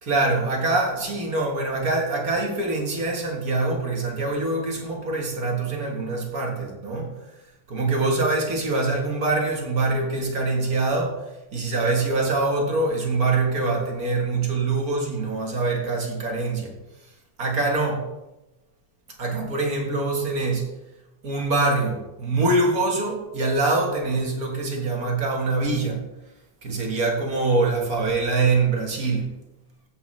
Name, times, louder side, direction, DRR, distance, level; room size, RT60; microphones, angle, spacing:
voice 1, 0.0-7.1 7.7-11.2 11.5-16.8 17.4-18.1 19.2-20.7 21.2-26.0 26.6-29.3, right 3 dB, 40° right, 1 dB, 1.4 m, -24 dB
15.0 x 7.9 x 3.2 m, 0.98 s
omnidirectional pair, 3.5 m